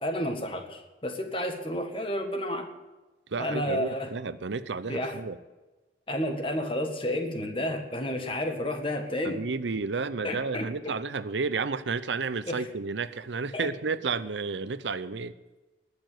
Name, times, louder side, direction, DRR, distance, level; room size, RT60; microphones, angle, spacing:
voice 1, 0.0-2.7 3.4-4.1 4.9-5.2 6.1-9.4 10.2-10.9 12.5-12.7 13.5-13.7, left 1 dB, 30° left, 5 dB, 1.7 m, -31 dB
voice 2, 3.3-5.4 9.2-15.3, right 4 dB, 85° right, 14 dB, 0.7 m, -31 dB
20.0 x 7.0 x 9.3 m, 1.2 s
head